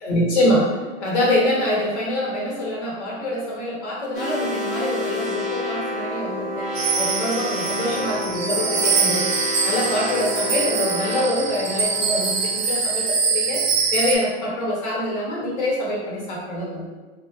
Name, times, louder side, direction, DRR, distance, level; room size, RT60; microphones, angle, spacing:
voice 1, 0.0-6.7 6.9-9.3 9.6-13.6 13.9-16.9, left 1 dB, 60° left, -4 dB, 0.8 m, -25 dB
sound 1, 4.1-13.1, left 1 dB, 20° left, 0.9 m, -29 dB
sound 2, 6.7-14.2, right 5 dB, 70° right, 0.6 m, -24 dB
2.3 x 2.1 x 2.6 m, 1.3 s
hypercardioid pair, 130°, 39 cm